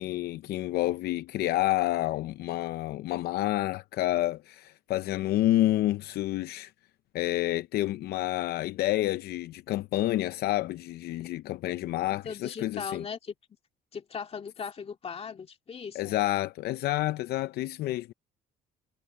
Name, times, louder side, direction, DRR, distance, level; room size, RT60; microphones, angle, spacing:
voice 1, 0.0-6.7 7.1-13.0 15.9-18.1, left 15 dB, 70° left, 0.6 m, -29 dB
voice 2, 12.2-13.4 13.9-16.2, left 6 dB, 35° left, 2.1 m, -38 dB
cardioid pair, 110°, 17 cm